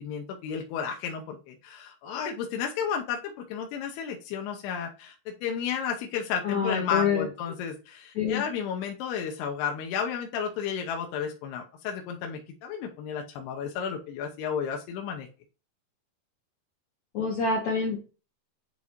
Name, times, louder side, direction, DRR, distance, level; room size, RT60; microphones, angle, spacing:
voice 1, 0.0-15.3, left 7 dB, 80° left, 1 dB, 2.9 m, -32 dB
voice 2, 6.4-7.3 8.2-8.4 17.1-18.0, left 5 dB, 65° left, -1 dB, 1.8 m, -26 dB
9.5 x 4.0 x 3.0 m, 0.34 s
omnidirectional pair, 4.8 m